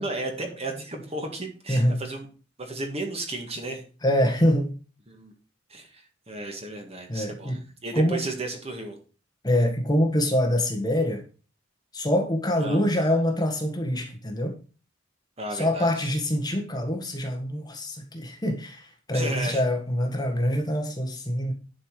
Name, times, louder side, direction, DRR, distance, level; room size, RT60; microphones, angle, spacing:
voice 1, 0.0-2.3 2.6-3.8 5.1-5.3 5.7-9.0 12.6-12.8 15.4-16.1 19.1-19.6, right 2 dB, 35° right, 3 dB, 1.9 m, -34 dB
voice 2, 1.7-2.0 4.0-4.7 7.1-7.6 7.9-8.2 9.4-11.2 11.9-14.6 15.5-21.5, equal, 20° left, 3 dB, 1.5 m, -25 dB
10.5 x 5.5 x 4.9 m, 0.37 s
head